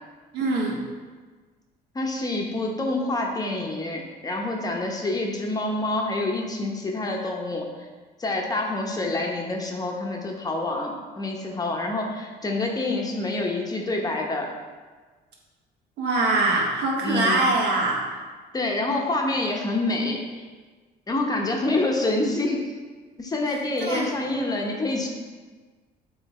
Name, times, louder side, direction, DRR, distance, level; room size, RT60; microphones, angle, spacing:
voice 1, 0.3-0.8 16.0-18.0 23.8-24.2, right 2 dB, 80° right, -2 dB, 1.4 m, -23 dB
voice 2, 1.9-7.9 8.2-14.5 17.0-17.4 18.5-20.4 21.1-22.6 23.2-25.1, left 2 dB, 20° left, 0 dB, 0.9 m, -27 dB
7.7 x 3.2 x 4.2 m, 1.4 s
cardioid pair, 110°, 17 cm